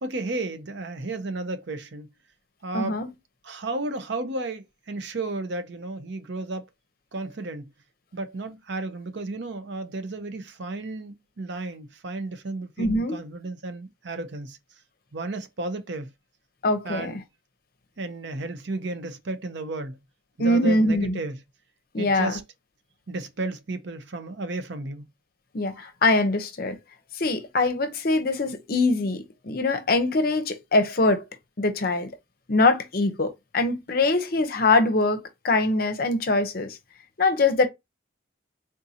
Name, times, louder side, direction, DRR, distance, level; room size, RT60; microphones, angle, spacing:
voice 1, 0.0-2.1 2.6-3.0 3.4-6.7 7.1-7.7 8.1-14.6 15.1-16.1 16.8-17.2 18.0-20.0 20.4-21.4 22.0-22.4 23.1-25.1, right 2 dB, 60° right, 0.6 m, -33 dB
voice 2, 2.7-3.1 12.8-13.2 16.6-17.2 20.4-21.2 21.9-22.3 25.5-26.8 27.1-31.2 31.6-32.1 32.5-36.8 37.2-37.7, left 2 dB, 50° left, 0.6 m, -23 dB
3.7 x 2.6 x 2.7 m
head